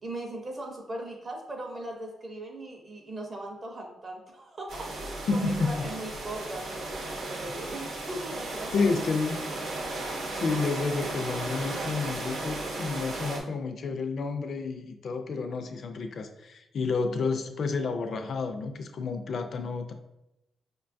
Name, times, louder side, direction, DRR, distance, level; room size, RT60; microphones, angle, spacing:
voice 1, 0.0-9.1, right 1 dB, 30° right, 2 dB, 0.5 m, -39 dB
sound 1, 4.7-13.4, right 2 dB, 70° right, 0.7 m, -35 dB
voice 2, 5.3-5.9 8.7-9.4 10.4-19.9, left 4 dB, 50° left, 6 dB, 0.3 m, -30 dB
5.1 x 2.2 x 2.5 m, 0.89 s
wide cardioid pair, 155°, 0 cm